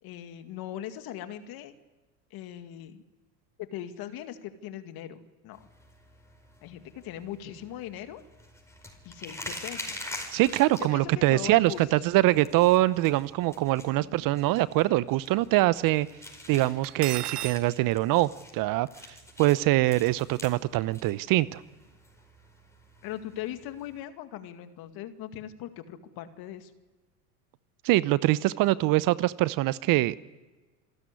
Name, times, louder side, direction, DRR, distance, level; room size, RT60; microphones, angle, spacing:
voice 1, 0.0-1.7 2.3-3.0 3.6-5.7 6.6-8.2 9.0-10.0 10.9-11.8 12.9-13.1 14.0-14.3 23.0-26.7, left 11 dB, 55° left, 8 dB, 2.2 m, -40 dB
sound 1, 5.5-24.0, left 1 dB, 5° left, 5.3 m, -46 dB
voice 2, 10.3-16.1 16.5-21.6 27.8-30.2, right 17 dB, 50° right, 19 dB, 0.7 m, -24 dB
Cutlery silverware, 16.8-17.6, right 13 dB, 85° right, 1.1 m, -34 dB
27.0 x 13.5 x 9.8 m, 1.2 s
hypercardioid pair, 95°, 45 cm